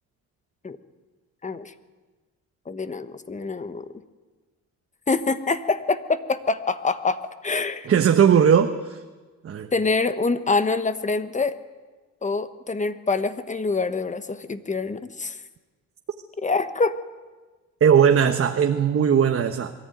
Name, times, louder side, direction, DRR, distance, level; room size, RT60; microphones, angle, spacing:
voice 1, 1.4-1.7 2.7-3.9 5.1-7.9 9.7-11.6 12.2-15.4 16.4-17.0, left 3 dB, 25° left, 11 dB, 1.3 m, -25 dB
voice 2, 7.9-9.0 9.4-9.7 17.8-19.7, right 8 dB, 45° right, 5 dB, 1.2 m, -18 dB
23.0 x 14.0 x 9.2 m, 1.3 s
cardioid pair, 90°, 30 cm